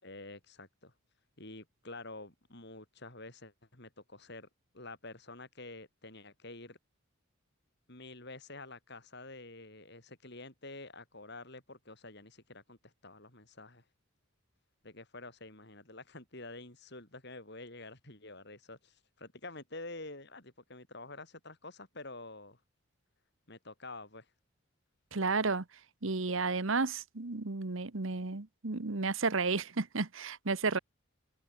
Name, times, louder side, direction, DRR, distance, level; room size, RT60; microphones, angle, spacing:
voice 1, 0.0-0.9 1.4-4.5 4.7-6.8 7.9-13.8 14.8-22.6 23.5-24.3, left 2 dB, 50° left, 6.3 m, -48 dB
voice 2, 25.1-25.6 26.0-30.8, right 4 dB, 70° right, 1.2 m, -32 dB
head